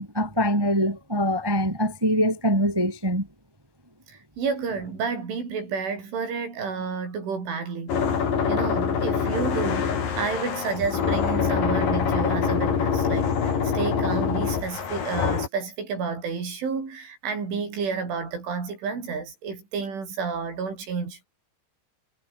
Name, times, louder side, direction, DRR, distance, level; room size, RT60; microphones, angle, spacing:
voice 1, 0.0-3.3, equal, 20° right, 0.6 m, -23 dB
voice 2, 4.1-8.0 8.5-9.9 10.2-21.2, right 5 dB, 75° right, 9.2 m, -30 dB
sound 1, 7.9-15.5, left 6 dB, 50° left, 5.0 m, -25 dB
omnidirectional pair, 5.5 m